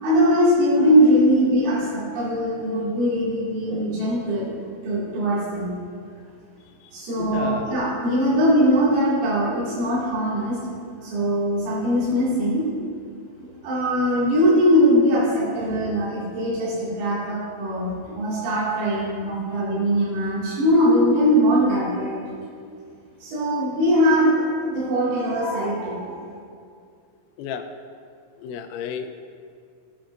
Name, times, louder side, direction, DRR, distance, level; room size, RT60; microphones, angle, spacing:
voice 1, 0.0-5.7 6.9-10.6 11.0-12.6 13.4-22.2 23.2-26.2, equal, 85° right, -9 dB, 5.0 m, -21 dB
voice 2, 7.2-7.8 27.4-27.6 28.4-29.1, left 7 dB, 85° left, 5 dB, 2.8 m, -32 dB
17.0 x 8.6 x 2.6 m, 2.3 s
omnidirectional pair, 5.7 m